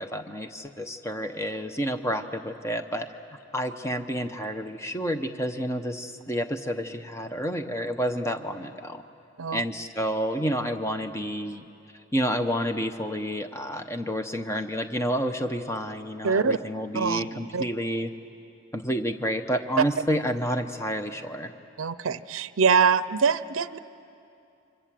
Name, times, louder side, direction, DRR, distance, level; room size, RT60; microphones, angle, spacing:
voice 1, 0.0-3.1 3.5-9.0 9.5-11.6 12.1-18.1 18.7-21.5, equal, 15° left, 7 dB, 0.9 m, -29 dB
voice 2, 16.2-16.6 16.9-17.2 17.5-17.6 19.8-19.9 21.8-23.8, right 6 dB, 80° right, 15 dB, 0.5 m, -23 dB
28.5 x 24.5 x 7.6 m, 2.6 s
head